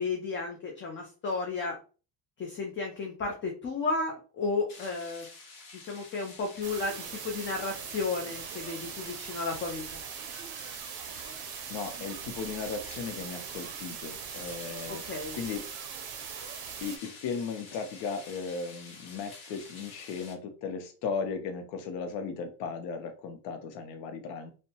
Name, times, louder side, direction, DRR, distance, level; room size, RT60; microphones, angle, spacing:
voice 1, 0.0-1.8 2.4-5.3 5.8-10.0 14.9-15.4, left 3 dB, 30° left, 1 dB, 0.4 m, -33 dB
sound 1, 4.7-20.3, left 3 dB, 50° left, 0.9 m, -49 dB
sound 2, 6.6-17.0, right 9 dB, 60° right, 0.5 m, -41 dB
voice 2, 11.7-15.0 15.3-15.7 16.8-24.5, left 5 dB, 85° left, 6 dB, 0.6 m, -36 dB
2.6 x 2.1 x 2.7 m, 0.36 s
cardioid pair, 135°, 42 cm